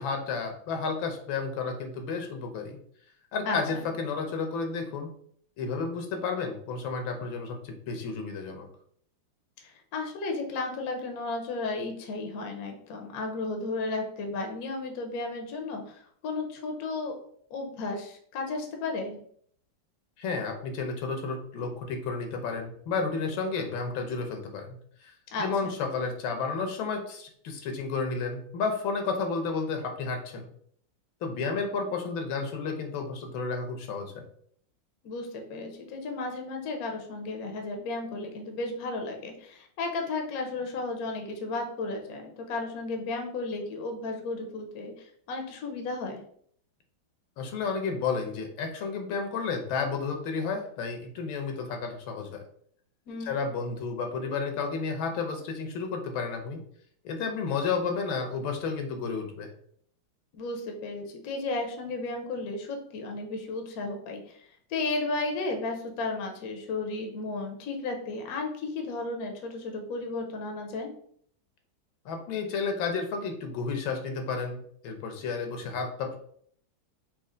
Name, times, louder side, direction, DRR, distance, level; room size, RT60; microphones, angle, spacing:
voice 1, 0.0-2.8 3.3-5.1 5.6-8.7 20.2-25.1 25.4-30.4 31.2-34.2 47.4-52.4 53.2-56.6 57.0-59.5 72.0-76.2, left 4 dB, 80° left, 4 dB, 1.5 m, -32 dB
voice 2, 3.5-3.8 9.6-17.2 17.5-19.2 25.3-25.7 35.0-44.9 45.3-46.2 53.1-53.3 60.3-70.9, left 3 dB, 60° left, 3 dB, 1.1 m, -34 dB
4.3 x 2.9 x 3.7 m, 0.62 s
omnidirectional pair, 2.2 m